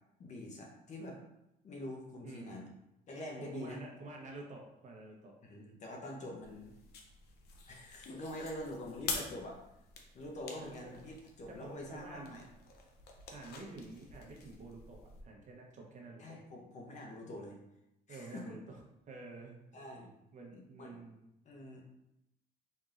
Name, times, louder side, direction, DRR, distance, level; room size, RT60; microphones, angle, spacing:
voice 1, 0.2-1.2 1.6-2.6 3.1-3.8 5.4-6.8 7.7-9.6 10.1-12.4 16.2-17.6 18.1-18.5 19.7-20.1 20.5-21.0 21.4-21.8, left 1 dB, 45° left, 0 dB, 0.9 m, -45 dB
voice 2, 2.2-2.7 3.4-5.4 10.6-10.9 11.5-12.5 13.3-16.4 18.1-18.6 19.1-19.6 20.3-21.2, right 3 dB, 45° right, 0 dB, 0.9 m, -49 dB
sound 1, 6.4-15.2, left 4 dB, 70° left, 0.7 m, -47 dB
4.1 x 3.4 x 2.5 m, 0.85 s
cardioid pair, 110°, 17 cm